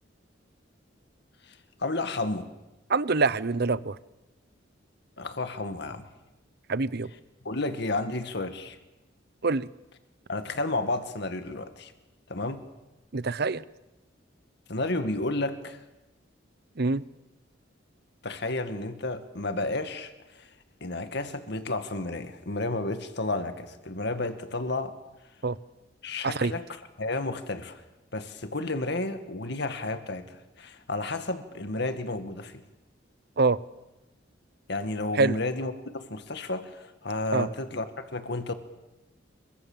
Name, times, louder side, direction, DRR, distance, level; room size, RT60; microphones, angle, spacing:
voice 1, 1.5-2.5 5.2-6.1 7.4-8.8 10.3-11.9 12.3-12.7 14.7-15.8 18.2-20.5 20.8-25.0 26.0-26.6 27.0-27.8 28.1-32.6 34.7-38.5, left 2 dB, 60° left, 8 dB, 2.1 m, -32 dB
voice 2, 2.9-4.0 6.7-7.1 9.4-9.7 13.1-13.6 16.8-17.0 25.4-25.6 26.2-26.5 33.4-33.6 35.1-35.4 37.3-37.5, right 3 dB, 60° right, 17 dB, 0.9 m, -25 dB
27.5 x 24.0 x 7.5 m, 0.99 s
head